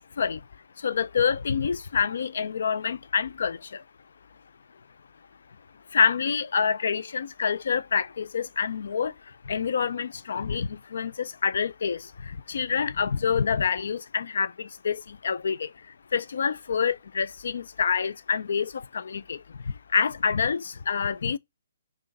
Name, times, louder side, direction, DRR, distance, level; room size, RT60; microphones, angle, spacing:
voice 1, 0.8-3.6 5.9-9.1 9.5-12.0 12.5-15.7 16.1-19.4 19.9-21.4, left 6 dB, 65° left, 0.4 m, -27 dB
5.6 x 2.5 x 3.8 m
hypercardioid pair, 140°, 0 cm